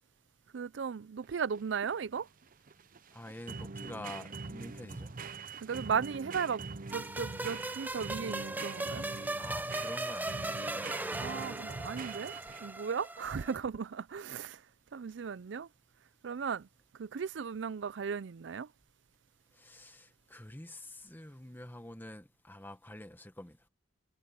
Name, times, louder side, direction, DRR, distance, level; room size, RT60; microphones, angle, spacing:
voice 1, 0.5-2.3 5.6-6.6 6.9-9.0 11.2-12.3 12.6-14.6 14.9-15.7 16.2-16.7 17.0-18.7, right 6 dB, 80° right, 0.5 m, -36 dB
sound 1, 1.2-12.9, right 4 dB, 50° right, 0.9 m, -44 dB
voice 2, 3.1-5.1 9.4-10.6 19.6-23.6, left 1 dB, 10° left, 1.6 m, -47 dB
sound 2, 6.9-13.6, right 2 dB, 10° right, 0.8 m, -38 dB
head